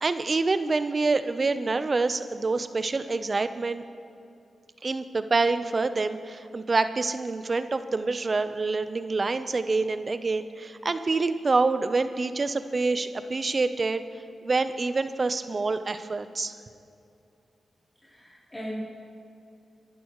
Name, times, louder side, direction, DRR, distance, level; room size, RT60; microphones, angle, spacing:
voice 1, 0.0-3.8 4.8-14.0 14.4-16.5, right 3 dB, 45° right, 11 dB, 0.8 m, -26 dB
voice 2, 18.0-18.8, equal, 20° left, -8 dB, 3.5 m, -37 dB
23.0 x 12.0 x 3.2 m, 2.7 s
supercardioid pair, 40°, 0 cm